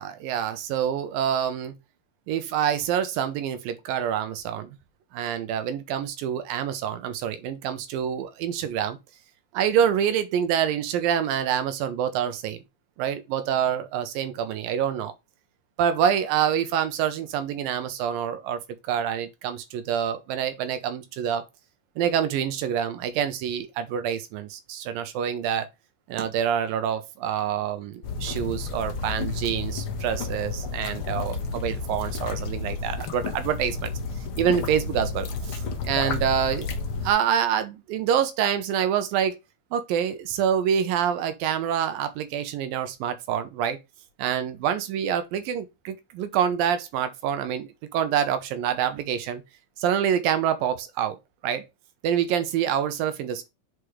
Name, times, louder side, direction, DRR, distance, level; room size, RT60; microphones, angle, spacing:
voice 1, 0.0-1.7 2.3-4.8 5.1-9.0 9.5-12.6 13.0-15.1 15.8-18.6 18.9-21.4 22.0-25.7 26.1-33.9 34.4-36.7 37.0-39.4 39.7-43.8 44.2-49.4 49.8-51.2 51.4-51.7 52.0-53.5, right 9 dB, 85° right, 2.7 m, -26 dB
sound 1, 28.0-37.1, left 4 dB, 65° left, 1.3 m, -31 dB
6.6 x 5.0 x 3.2 m
omnidirectional pair, 4.0 m